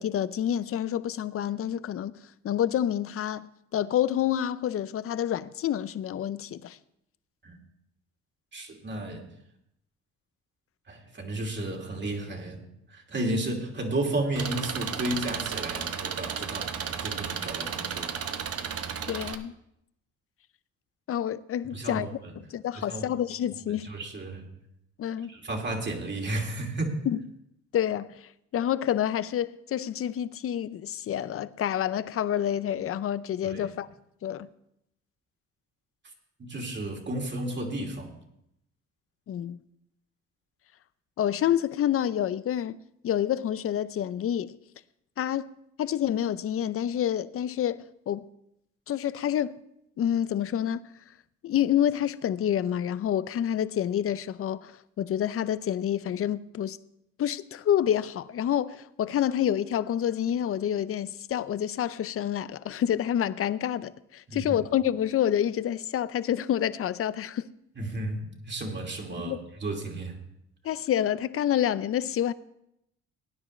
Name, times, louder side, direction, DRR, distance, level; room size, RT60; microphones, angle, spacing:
voice 1, 0.0-2.1 2.4-6.8 19.1-19.5 21.1-22.1 22.4-23.9 25.0-25.3 27.1-27.2 27.7-28.2 28.5-33.9 34.2-34.5 39.3-39.6 41.2-42.8 43.0-44.6 45.2-45.5 45.8-48.3 48.9-49.6 50.0-50.8 51.4-54.7 55.0-56.8 57.2-67.5 69.2-69.4 70.6-72.3, left 10 dB, 50° left, 0.5 m, -28 dB
voice 2, 8.5-9.3 10.9-16.7 17.0-18.1 21.7-22.3 22.7-23.1 23.7-24.5 25.3-27.0 33.4-33.7 36.4-38.1 64.3-64.4 67.8-70.2, right 2 dB, 35° right, 2.6 m, -33 dB
Engine, 14.4-19.4, right 7 dB, 50° right, 0.9 m, -33 dB
18.0 x 9.7 x 3.2 m
cardioid pair, 90°, 30 cm